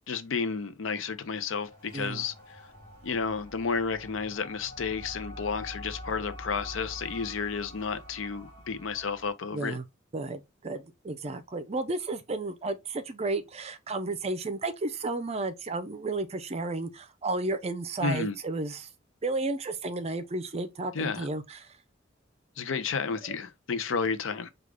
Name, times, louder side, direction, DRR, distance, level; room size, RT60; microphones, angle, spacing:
voice 1, 0.1-2.6 3.0-9.8 18.0-18.4 20.9-21.3 22.6-24.5, left 5 dB, 80° left, 0.6 m, -32 dB
sound 1, 1.0-9.3, left 1 dB, 30° left, 2.5 m, -45 dB
voice 2, 1.9-2.3 9.5-9.8 10.1-18.9 19.2-21.7, right 2 dB, 35° right, 0.5 m, -33 dB
4.9 x 2.4 x 3.3 m
head